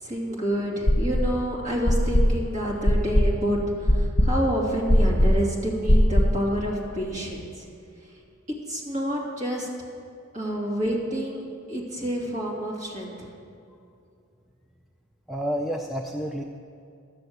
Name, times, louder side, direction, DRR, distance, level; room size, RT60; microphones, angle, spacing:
voice 1, 0.0-7.7 8.7-9.7 10.3-11.4 11.7-13.3, equal, 35° right, -4 dB, 2.6 m, -28 dB
sound 1, 0.9-1.4 1.9-6.5, equal, 40° left, 1.0 m, -20 dB
voice 2, 15.3-16.4, equal, ahead, 0 dB, 0.4 m, -29 dB
12.0 x 7.0 x 7.9 m, 2.5 s
head